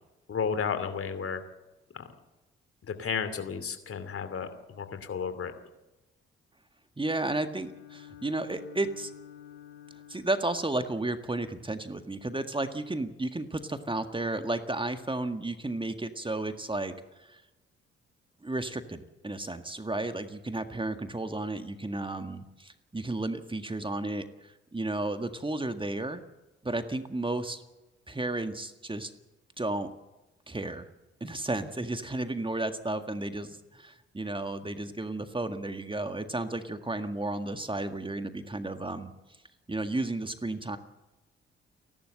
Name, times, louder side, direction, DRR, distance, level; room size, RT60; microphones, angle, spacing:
voice 1, 0.3-1.4 1.9-2.1 2.9-5.5, left 6 dB, 45° left, 9 dB, 2.7 m, -33 dB
voice 2, 7.0-9.1 10.1-17.4 18.4-26.2 26.6-27.6 28.1-29.1 29.6-29.9 30.5-30.9 31.2-39.1 39.7-40.8, right 2 dB, 15° right, 8 dB, 1.8 m, -33 dB
Bowed string instrument, 7.5-10.6, left 11 dB, 75° left, 5.5 m, -49 dB
29.5 x 12.0 x 7.8 m, 1.0 s
hypercardioid pair, 40°, 30 cm